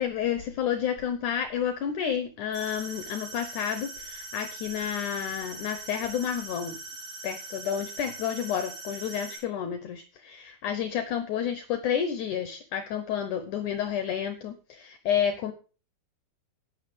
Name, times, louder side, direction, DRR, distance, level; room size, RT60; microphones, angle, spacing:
voice 1, 0.0-6.8 7.2-15.5, left 8 dB, 70° left, 9 dB, 2.1 m, -30 dB
sound 1, 2.5-9.4, right 3 dB, 65° right, 6.9 m, -42 dB
11.5 x 9.1 x 5.1 m, 0.36 s
omnidirectional pair, 4.3 m